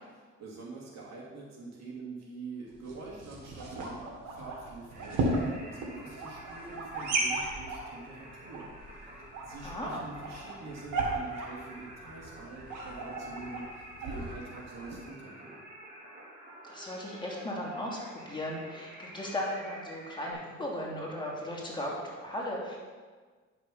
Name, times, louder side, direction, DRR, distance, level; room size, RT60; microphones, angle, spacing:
voice 1, 0.1-15.6, right 3 dB, 60° right, -3 dB, 2.9 m, -46 dB
sound 1, 2.7-15.0, right 2 dB, 90° right, 2.1 m, -36 dB
Singing, 4.9-20.3, right 1 dB, 30° right, 3.3 m, -49 dB
voice 2, 9.6-10.0 16.6-22.8, left 1 dB, 15° left, -4 dB, 3.1 m, -36 dB
10.5 x 6.7 x 5.6 m, 1.5 s
cardioid pair, 90°, 30 cm